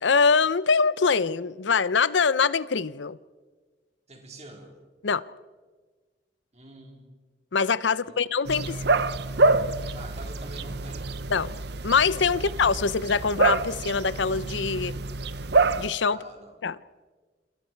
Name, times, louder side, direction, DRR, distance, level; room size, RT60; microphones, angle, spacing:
voice 1, 0.0-3.2 5.0-5.2 7.5-8.8 11.3-11.6 11.8-15.0 15.8-16.2 16.6-16.8, left 5 dB, 80° left, 0.7 m, -23 dB
voice 2, 4.1-4.7 6.5-7.1 7.9-8.2 8.7-8.9 9.9-11.1 12.3-12.5 16.1-16.6, right 2 dB, 35° right, 4.1 m, -45 dB
sound 1, 8.5-15.9, right 3 dB, 65° right, 0.9 m, -26 dB
29.5 x 24.5 x 4.6 m
head